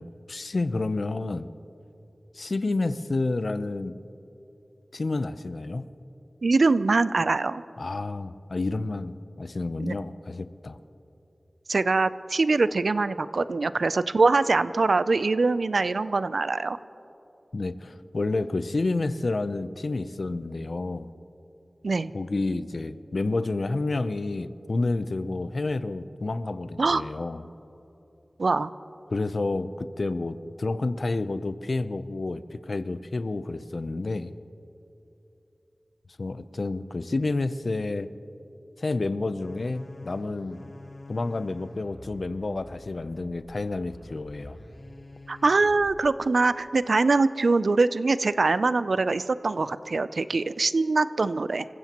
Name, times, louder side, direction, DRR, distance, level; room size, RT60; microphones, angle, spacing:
voice 1, 0.0-1.5 2.3-4.0 4.9-5.9 7.8-10.8 17.5-21.1 22.1-27.5 29.1-34.3 36.2-38.1 38.8-40.6 41.1-44.6, left 2 dB, 70° left, 12 dB, 0.6 m, -29 dB
voice 2, 6.4-7.6 9.8-10.0 11.7-16.8 21.8-22.1 26.8-27.0 28.4-28.7 45.3-51.7, right 3 dB, 85° right, 14 dB, 0.4 m, -23 dB
sound 1, 39.4-46.2, left 1 dB, 55° left, 2.4 m, -47 dB
27.5 x 15.5 x 3.0 m, 2.9 s
wide cardioid pair, 50°, 0 cm